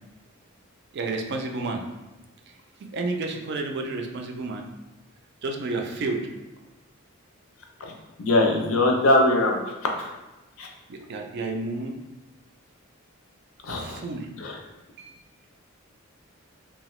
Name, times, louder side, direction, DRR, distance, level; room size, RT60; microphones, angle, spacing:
voice 1, 0.9-1.8 2.9-4.6 5.4-6.2 10.9-11.9 13.7-14.3 15.0-15.2, right 3 dB, 50° right, 3 dB, 0.4 m, -30 dB
voice 2, 8.2-9.6 10.6-10.7 13.7-14.0 14.4-14.6, left 1 dB, 70° left, 2 dB, 0.5 m, -21 dB
2.8 x 2.3 x 3.0 m, 1.1 s
head